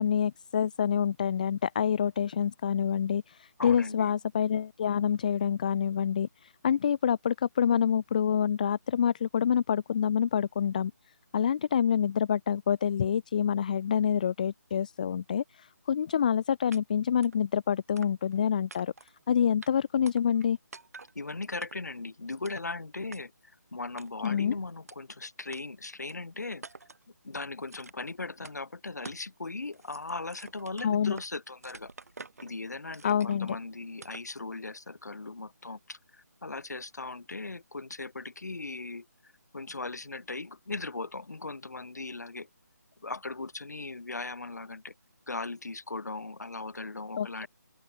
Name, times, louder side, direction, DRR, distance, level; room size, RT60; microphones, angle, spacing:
voice 1, 0.0-10.9 11.3-18.9 19.3-20.6 24.2-24.5 30.8-31.1 33.0-33.6 47.2-47.5, left 8 dB, 25° left, 0.5 m, -27 dB
voice 2, 3.6-4.1 21.1-23.3 23.7-26.6 27.2-31.9 32.4-39.1 39.5-42.5 43.0-44.9 45.3-47.5, left 3 dB, 65° left, 1.3 m, -38 dB
sound 1, 16.7-16.8 17.2-17.4 18.0-18.4 18.7-19.2 19.6-19.7 20.1-20.5 20.7-21.1 21.6-22.0 22.4-22.7 23.1-23.2 24.0-24.3 24.9-25.0 25.5-25.6 26.1-26.2 26.6-27.0 27.7-28.1 28.4-28.6 29.0-29.3 29.6-31.3 31.6-32.5 32.9-33.5 34.0-34.3, right 4 dB, 55° right, 3.8 m, -48 dB
open air
figure-of-eight pair, 150°, 10 cm